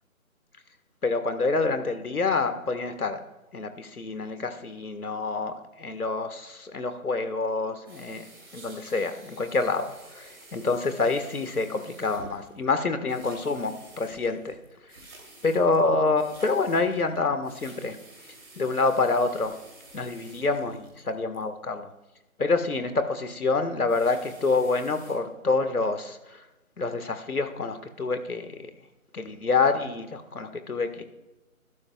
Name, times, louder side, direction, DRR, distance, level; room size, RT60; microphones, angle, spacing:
voice 1, 1.0-3.2 3.5-8.2 8.5-14.6 15.4-18.0 18.6-19.5 19.9-21.9 22.4-26.4 26.8-28.7 29.1-31.0, left 3 dB, 85° left, 8 dB, 1.7 m, -27 dB
sound 1, 7.9-21.4 23.7-25.1, right 2 dB, 15° right, 3.1 m, -50 dB
21.5 x 12.0 x 2.4 m, 1.0 s
figure-of-eight pair, 175°, 43 cm